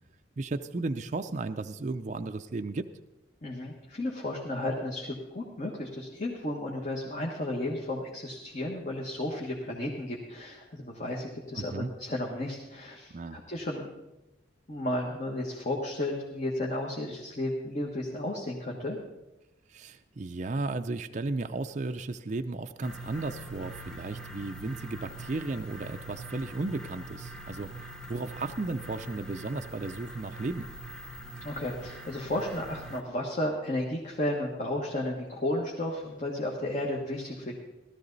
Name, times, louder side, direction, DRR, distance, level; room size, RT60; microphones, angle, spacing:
voice 1, 0.4-2.9 11.5-11.9 13.1-13.4 19.7-30.7, right 3 dB, 40° right, 7 dB, 0.5 m, -34 dB
voice 2, 3.4-13.9 14.7-19.0 31.4-37.5, left 1 dB, 40° left, -2 dB, 1.5 m, -33 dB
sound 1, 22.8-33.0, right 1 dB, 5° left, 0.9 m, -43 dB
16.5 x 13.0 x 4.0 m, 1.0 s
head